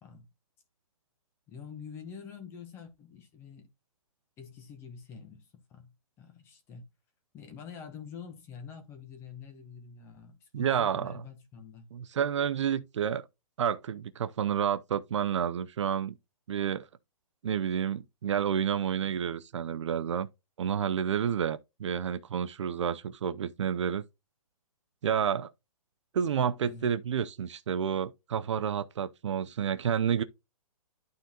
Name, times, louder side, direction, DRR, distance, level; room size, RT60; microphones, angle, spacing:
voice 1, 1.5-3.7 4.4-5.9 6.2-6.8 7.3-11.9 26.6-26.9, left 6 dB, 10° left, 0.9 m, -46 dB
voice 2, 10.5-11.2 11.9-13.2 13.6-16.2 16.5-16.9 17.4-20.3 20.6-24.0 25.0-25.5 26.1-30.2, right 8 dB, 50° right, 0.5 m, -30 dB
11.5 x 3.9 x 2.8 m
hypercardioid pair, 165°, 19 cm